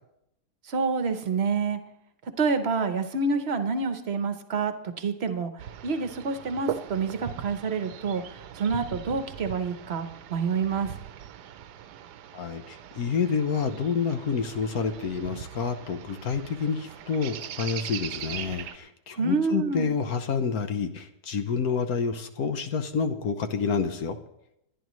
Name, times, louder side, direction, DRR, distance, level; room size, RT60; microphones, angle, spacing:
voice 1, 0.7-1.8 2.4-10.9 19.2-19.9, right 4 dB, 45° right, 9 dB, 1.0 m, -28 dB
sound 1, 5.6-18.8, right 10 dB, 80° right, 1.3 m, -40 dB
voice 2, 12.3-24.2, left 6 dB, 65° left, 8 dB, 1.3 m, -28 dB
27.0 x 10.5 x 3.1 m, 0.81 s
omnidirectional pair, 1.8 m